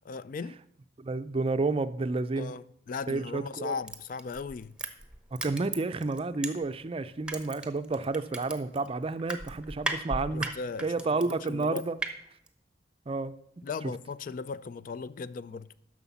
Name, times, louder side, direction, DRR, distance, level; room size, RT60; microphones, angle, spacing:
voice 1, 0.1-0.6 2.4-4.8 10.3-10.9 11.3-11.9 13.6-15.8, left 4 dB, 50° left, 0.4 m, -37 dB
voice 2, 1.0-2.5 3.1-3.7 5.3-10.5 10.8-12.0 13.1-13.3, right 3 dB, 30° right, 0.4 m, -30 dB
Crushing, 3.9-6.9 7.2-12.1 12.5-12.6, right 2 dB, 5° right, 1.0 m, -36 dB
11.0 x 6.3 x 7.1 m
head